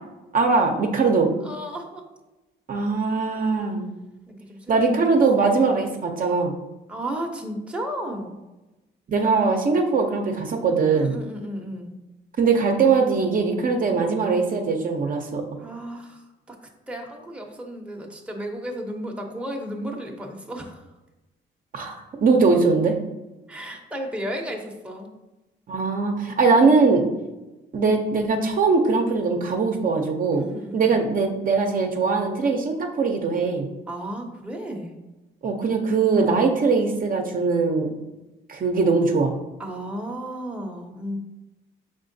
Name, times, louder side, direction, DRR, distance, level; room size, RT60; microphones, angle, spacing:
voice 1, 0.3-1.3 2.7-3.9 4.7-6.6 9.1-11.2 12.4-15.4 21.7-23.0 25.7-27.0 27.7-30.4 30.7-33.7 35.4-37.9 38.5-39.3, right 4 dB, 45° right, 2 dB, 0.6 m, -21 dB
voice 2, 1.4-2.0 4.3-4.7 5.1-5.5 6.9-8.4 10.9-11.9 15.6-16.6 16.9-20.9 23.5-25.1 30.3-31.0 33.9-34.9 39.6-41.2, right 1 dB, 5° right, 1 dB, 0.7 m, -34 dB
5.4 x 3.6 x 2.6 m, 1.0 s
cardioid pair, 90°, 20 cm